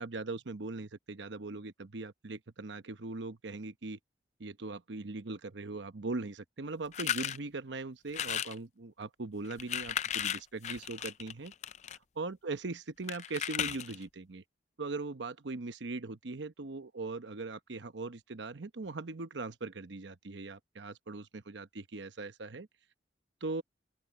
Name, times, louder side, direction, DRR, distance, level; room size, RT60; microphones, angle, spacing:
voice 1, 0.0-4.0 4.4-11.5 12.2-14.4 14.8-22.7 23.4-23.6, right 3 dB, 80° right, 0.9 m, -40 dB
sound 1, 6.9-7.4 8.1-8.6 9.4-12.0 13.1-14.0, left 9 dB, 40° left, 0.4 m, -35 dB
open air
head